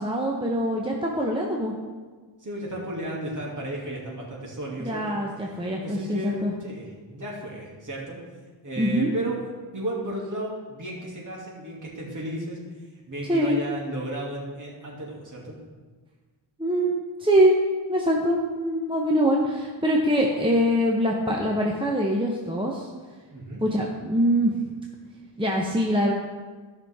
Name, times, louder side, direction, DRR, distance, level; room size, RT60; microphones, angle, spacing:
voice 1, 0.0-1.7 4.8-6.5 8.8-9.1 13.3-13.6 16.6-17.5 17.9-22.9 23.6-24.6 25.4-26.1, equal, 10° right, -2 dB, 1.0 m, -23 dB
voice 2, 2.4-5.2 5.5-8.2 8.6-9.5 9.7-12.6 13.1-15.6 23.3-23.6, right 1 dB, 40° right, -3 dB, 2.7 m, -34 dB
15.0 x 5.9 x 3.7 m, 1.4 s
wide cardioid pair, 110°, 49 cm